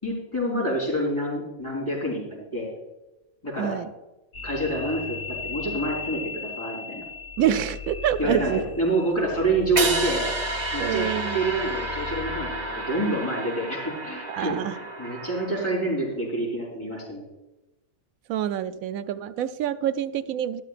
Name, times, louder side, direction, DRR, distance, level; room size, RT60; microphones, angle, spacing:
voice 1, 0.0-2.7 3.4-3.8 4.4-5.2 5.4-7.0 8.2-10.3 10.7-17.3, right 1 dB, 20° left, -5 dB, 4.3 m, -27 dB
voice 2, 3.6-3.9 7.4-8.6 10.8-11.4 14.3-14.8 18.3-20.6, right 10 dB, 75° right, 11 dB, 1.0 m, -26 dB
sound 1, 4.3-12.9, left 6 dB, 55° left, 2.1 m, -38 dB
sound 2, 9.8-15.9, right 2 dB, 30° right, 1.1 m, -30 dB
12.5 x 12.0 x 2.5 m, 1.0 s
omnidirectional pair, 1.5 m